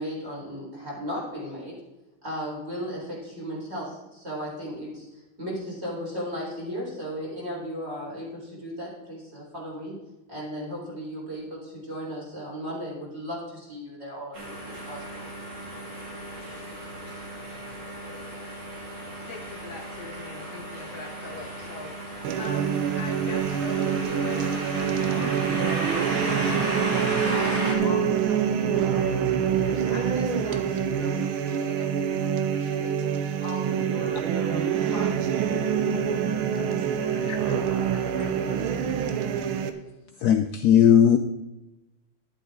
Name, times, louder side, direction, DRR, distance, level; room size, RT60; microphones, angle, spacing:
voice 1, 0.0-1.7 2.2-5.0 5.4-10.0 10.3-15.2 16.5-16.6, equal, 30° right, -5 dB, 4.7 m, -35 dB
sound 1, 14.3-27.7, right 1 dB, 55° right, 3.3 m, -35 dB
voice 2, 18.9-35.9 36.5-36.9 37.2-38.7, left 3 dB, 55° left, 3 dB, 1.4 m, -42 dB
sound 2, 22.2-39.7, right 8 dB, 85° right, 1.7 m, -26 dB
voice 3, 40.2-41.2, left 9 dB, 80° left, 7 dB, 0.8 m, -18 dB
11.5 x 11.5 x 3.8 m, 1.0 s
omnidirectional pair, 2.3 m